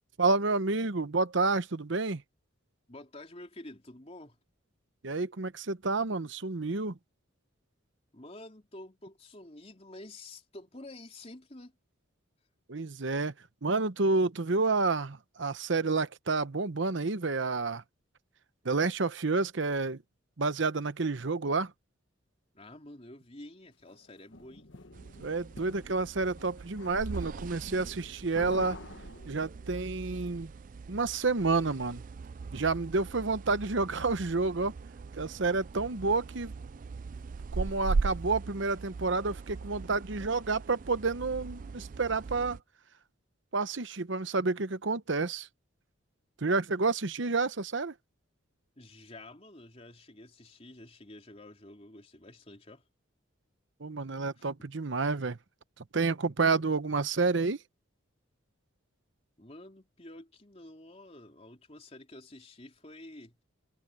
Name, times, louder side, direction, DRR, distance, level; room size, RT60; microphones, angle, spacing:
voice 1, 0.2-2.2 5.0-7.0 12.7-13.3 13.6-17.8 18.6-20.0 20.4-21.7 25.2-28.8 29.3-30.5 30.9-32.0 32.5-34.7 35.2-36.5 37.5-42.6 43.5-45.5 46.4-47.9 53.8-55.4 55.9-57.6, right 3 dB, 65° right, 0.9 m, -29 dB
voice 2, 2.9-4.4 8.1-11.8 22.5-24.7 48.8-52.8 54.4-54.5 59.4-63.4, left 1 dB, 30° left, 3.7 m, -49 dB
sound 1, 23.9-29.7, left 2 dB, 65° left, 1.4 m, -48 dB
sound 2, 24.9-42.6, right 4 dB, 40° right, 0.3 m, -40 dB
head